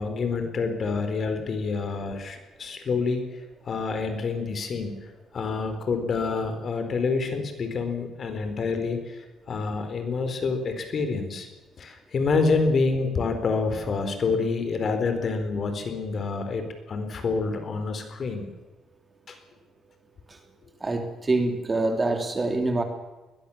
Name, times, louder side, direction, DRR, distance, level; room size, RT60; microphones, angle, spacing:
voice 1, 0.0-3.3 3.6-4.9 5.3-11.5 11.8-18.5 19.3-19.4, left 4 dB, 50° left, 8 dB, 4.3 m, -27 dB
voice 2, 20.8-22.8, right 2 dB, 25° right, 5 dB, 3.4 m, -25 dB
21.0 x 20.5 x 7.4 m, 1.1 s
cardioid pair, 90°, 0 cm